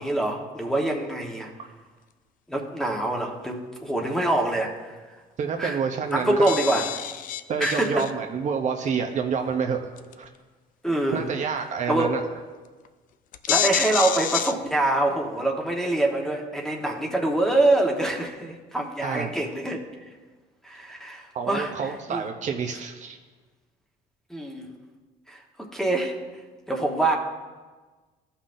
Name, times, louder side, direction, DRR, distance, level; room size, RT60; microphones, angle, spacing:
voice 1, 0.0-1.5 2.5-5.0 5.6-5.8 6.1-6.8 7.6-8.1 10.8-11.2 11.9-12.1 13.5-19.8 20.6-21.7 22.1-22.2 24.3-24.7 25.3-26.2 26.7-27.2, right 2 dB, 5° left, 1 dB, 1.1 m, -25 dB
voice 2, 5.4-6.5 7.5-9.8 10.2-10.3 11.1-12.2 19.0-19.3 21.3-23.2, right 6 dB, 45° right, 3 dB, 0.7 m, -28 dB
sound 1, 5.8-5.9 6.1-6.2 6.4-8.1 8.8-8.9 10.0-10.3 12.4-12.5 12.8-12.9 13.3-14.5, left 10 dB, 55° left, 0.4 m, -28 dB
14.5 x 5.7 x 2.6 m, 1.3 s
cardioid pair, 110°, 17 cm